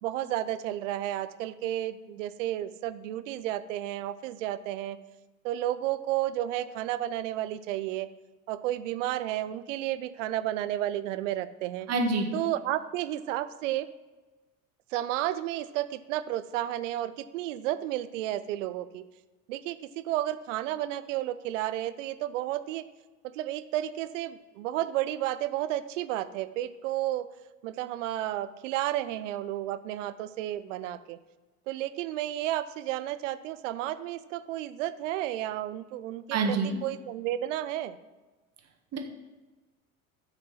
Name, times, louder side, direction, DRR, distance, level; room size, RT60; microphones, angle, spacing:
voice 1, 0.0-5.0 5.4-8.1 8.5-11.9 12.3-13.9 14.9-19.0 19.5-22.8 23.3-27.3 27.6-31.2 31.7-36.6 36.8-38.0, right 13 dB, 60° right, 13 dB, 0.6 m, -32 dB
voice 2, 11.9-12.3 36.3-36.8 38.9-39.0, right 3 dB, 35° right, 3 dB, 1.6 m, -26 dB
12.5 x 5.1 x 5.7 m, 1.2 s
figure-of-eight pair, 65°, 43 cm